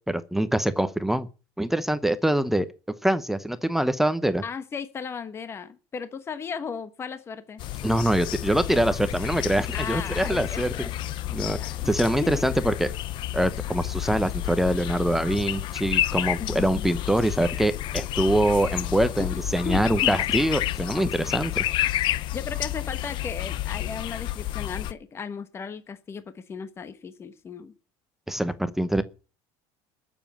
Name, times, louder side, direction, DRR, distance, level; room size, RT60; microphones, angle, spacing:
voice 1, 0.1-1.3 1.6-2.7 3.0-4.4 7.8-10.7 11.3-11.6 11.9-12.9 13.3-21.6 28.3-29.0, right 1 dB, 5° right, 12 dB, 0.8 m, -24 dB
voice 2, 4.4-7.6 9.7-11.0 11.3-11.9 12.2-12.4 16.4-16.8 19.2-19.3 19.6-20.1 22.3-27.7, left 6 dB, 25° left, 11 dB, 1.2 m, -36 dB
sound 1, 7.6-24.9, left 14 dB, 50° left, 0.7 m, -30 dB
20.5 x 7.2 x 7.3 m, 0.36 s
cardioid pair, 135°, 10 cm